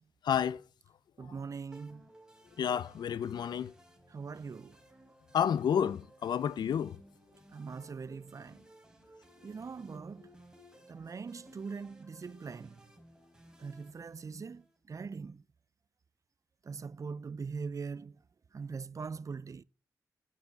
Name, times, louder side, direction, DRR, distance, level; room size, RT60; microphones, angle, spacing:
voice 1, 0.2-0.6 2.6-3.7 5.3-7.0, left 8 dB, 90° left, 0.6 m, -30 dB
voice 2, 1.2-2.1 4.1-4.8 7.5-8.6 9.4-10.3 10.9-12.8 13.6-15.4 16.6-18.2 18.5-19.6, right 5 dB, 50° right, 0.6 m, -42 dB
sound 1, 1.7-14.8, equal, 10° right, 3.7 m, -59 dB
9.4 x 9.3 x 8.2 m
cardioid pair, 65°, 7 cm